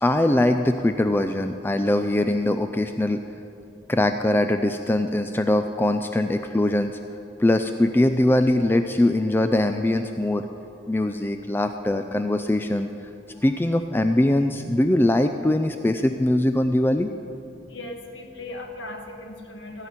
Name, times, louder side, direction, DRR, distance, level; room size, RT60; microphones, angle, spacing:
voice 1, 0.0-3.2 3.9-7.0 7.4-10.5 10.9-12.9 13.4-17.1, left 1 dB, 10° left, 7 dB, 0.4 m, -22 dB
voice 2, 17.5-19.9, left 2 dB, 80° left, 3 dB, 1.6 m, -38 dB
16.5 x 5.9 x 9.6 m, 2.5 s
head